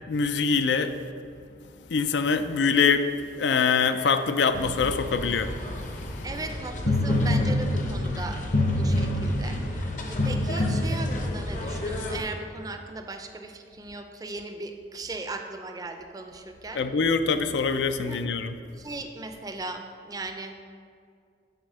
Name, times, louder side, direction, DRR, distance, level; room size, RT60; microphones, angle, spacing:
voice 1, 0.1-0.9 1.9-3.1 3.4-5.5 16.8-18.5, left 5 dB, 75° left, 10 dB, 0.4 m, -24 dB
sound 1, 4.5-12.2, left 1 dB, 45° left, 0.7 m, -27 dB
voice 2, 6.2-16.8 18.0-18.3 18.8-20.6, right 2 dB, 20° right, 6 dB, 0.4 m, -38 dB
8.0 x 4.2 x 6.5 m, 2.3 s
head